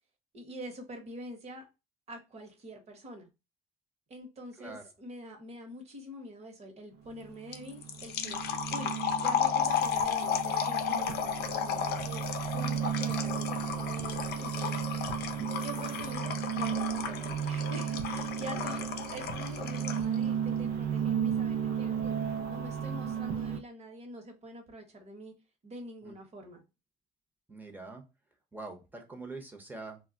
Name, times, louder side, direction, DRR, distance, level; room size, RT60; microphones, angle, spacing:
voice 1, 0.3-1.6 2.1-3.3 4.1-8.4 8.7-14.8 15.6-18.8 19.1-22.2 22.5-25.3 25.6-26.6, right 1 dB, 40° right, 1.0 m, -45 dB
voice 2, 4.6-4.9 18.6-18.9 26.0-26.1 27.5-28.0 28.5-30.0, right 2 dB, 10° right, 0.8 m, -44 dB
sound 1, 7.1-23.6, right 8 dB, 75° right, 0.5 m, -34 dB
sound 2, 7.5-20.1, left 8 dB, 70° left, 0.5 m, -34 dB
sound 3, 8.2-16.2, left 3 dB, 30° left, 0.6 m, -52 dB
2.2 x 2.1 x 3.7 m
cardioid pair, 110°, 17 cm